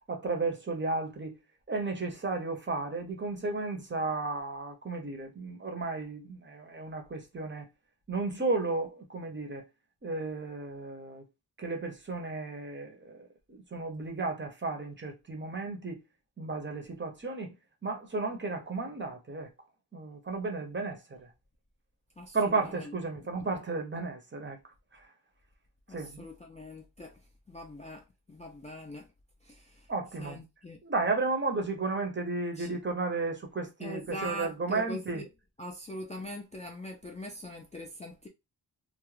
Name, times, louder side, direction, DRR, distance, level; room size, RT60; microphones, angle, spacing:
voice 1, 0.1-1.4 1.7-7.7 8.1-9.7 10.0-11.2 11.6-16.0 16.4-17.5 17.8-19.5 19.9-21.3 22.3-24.6 24.9-25.1 25.9-26.2 29.9-30.4 30.8-35.2, right 3 dB, 30° right, 0.6 m, -33 dB
voice 2, 22.2-23.3 25.9-27.2 27.5-29.1 29.4-29.9 30.1-30.8 32.6-32.8 33.8-35.3 35.6-38.3, equal, 20° left, 0.3 m, -42 dB
2.3 x 2.1 x 3.1 m
wide cardioid pair, 160°, 38 cm